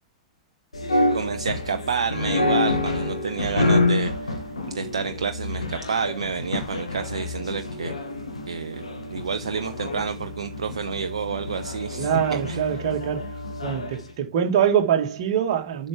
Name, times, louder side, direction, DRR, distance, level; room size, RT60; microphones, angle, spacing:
sound 1, 0.7-14.0, left 2 dB, 75° left, 1.9 m, -28 dB
voice 1, 0.9-4.4 4.7-8.0 8.5-12.7, right 6 dB, 70° right, 0.7 m, -29 dB
voice 2, 12.0-13.3 13.6-15.9, right 8 dB, 45° right, 2.2 m, -24 dB
7.6 x 6.1 x 3.7 m
figure-of-eight pair, 100°, 3 cm